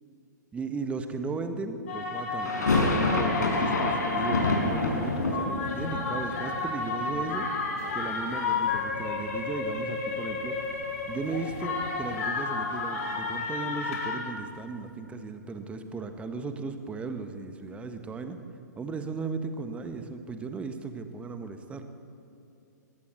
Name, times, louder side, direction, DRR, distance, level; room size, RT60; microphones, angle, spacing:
voice 1, 0.5-7.5 7.9-10.7 11.1-18.4 18.8-21.9, right 4 dB, 10° right, 8 dB, 1.3 m, -36 dB
sound 1, 1.9-14.2, left 4 dB, 50° left, 4.4 m, -32 dB
sound 2, 2.4-8.3 8.6-9.4 9.7-9.8 10.1-12.2, left 2 dB, 70° left, 5.1 m, -29 dB
20.5 x 17.5 x 8.2 m, 2.6 s
figure-of-eight pair, 115°, 10 cm